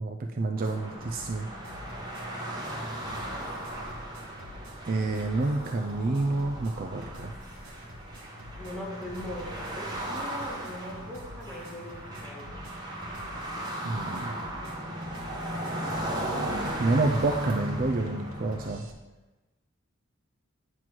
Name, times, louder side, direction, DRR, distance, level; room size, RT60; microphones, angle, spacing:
voice 1, 0.0-1.5 4.8-7.3 13.8-14.4 16.8-18.8, right 2 dB, 45° right, 4 dB, 0.4 m, -28 dB
sound 1, 0.6-18.7, right 1 dB, 20° right, 1.0 m, -36 dB
sound 2, 0.6-0.8 1.0-2.3 2.6-2.8 3.0-18.9, left 1 dB, 90° right, 0.9 m, -48 dB
voice 2, 3.1-3.5 8.6-12.6, left 1 dB, 5° left, -7 dB, 1.9 m, -41 dB
9.2 x 3.1 x 6.0 m, 1.1 s
head